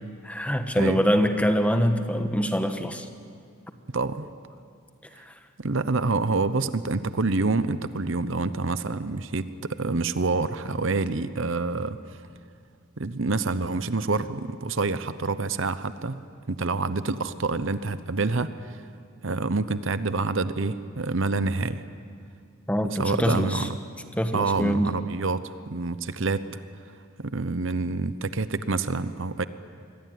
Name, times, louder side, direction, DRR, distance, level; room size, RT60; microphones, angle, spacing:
voice 1, 0.2-3.1 22.7-23.7 24.2-24.9, equal, 5° left, 7 dB, 1.3 m, -24 dB
voice 2, 3.9-4.3 5.6-12.0 13.0-16.2 16.5-18.8 19.2-21.8 22.9-23.8 24.3-26.6 27.2-29.4, right 3 dB, 60° right, 13 dB, 0.8 m, -27 dB
26.5 x 22.5 x 9.5 m, 2.3 s
head